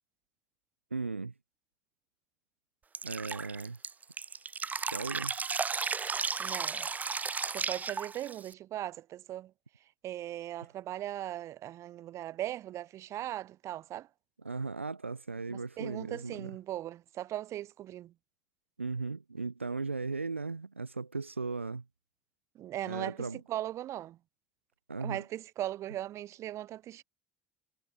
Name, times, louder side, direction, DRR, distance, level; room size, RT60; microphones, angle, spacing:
voice 1, 0.9-1.3 3.0-3.8 4.7-5.4 14.4-16.6 18.8-21.8 22.8-23.4 24.9-25.2, right 4 dB, 90° right, 2.1 m, -37 dB
Drip, 2.9-8.5, right 5 dB, 25° right, 5.2 m, -34 dB
voice 2, 6.4-6.9 7.5-9.5 10.0-14.1 15.5-18.1 22.6-24.2 25.0-27.0, right 13 dB, 50° right, 5.8 m, -39 dB
figure-of-eight pair, 65°, 7 cm